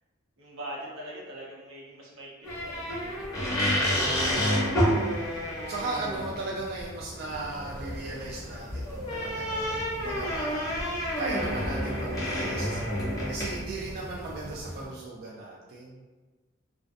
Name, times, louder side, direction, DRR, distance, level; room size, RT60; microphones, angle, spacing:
voice 1, 0.4-2.3 2.6-2.8, right 1 dB, 90° right, -5 dB, 0.7 m, -41 dB
sound 1, 2.4-14.9, equal, 15° left, 0.7 m, -30 dB
voice 2, 4.4-5.1 5.7-12.8 13.3-16.0, right 3 dB, 50° right, -3 dB, 0.3 m, -37 dB
2.4 x 2.2 x 2.5 m, 1.3 s
head